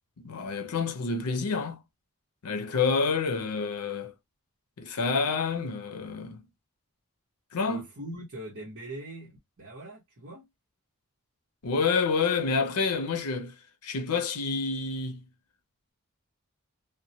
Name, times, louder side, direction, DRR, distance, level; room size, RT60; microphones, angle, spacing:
voice 1, 0.2-1.8 2.4-4.1 4.8-6.4 7.5-7.8 11.6-13.5 13.8-15.2, left 4 dB, 85° left, 0.6 m, -28 dB
voice 2, 7.7-10.5, right 1 dB, 60° right, 0.9 m, -42 dB
2.2 x 2.1 x 2.7 m
head